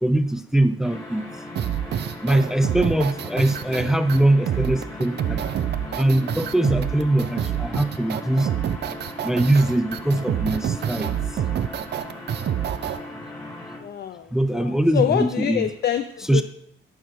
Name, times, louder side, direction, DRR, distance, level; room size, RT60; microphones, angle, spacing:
voice 1, 0.0-1.3 2.2-5.5 5.9-8.5 9.2-11.1 14.3-15.7 16.3-16.4, right 1 dB, 5° right, 11 dB, 0.6 m, -22 dB
sound 1, 0.8-13.8, left 1 dB, 20° left, 3.3 m, -38 dB
sound 2, 1.6-13.0, right 10 dB, 60° right, 0.7 m, -27 dB
voice 2, 13.7-16.4, left 9 dB, 55° left, 10 dB, 0.6 m, -26 dB
13.0 x 4.7 x 6.5 m, 0.68 s
cardioid pair, 90°, 20 cm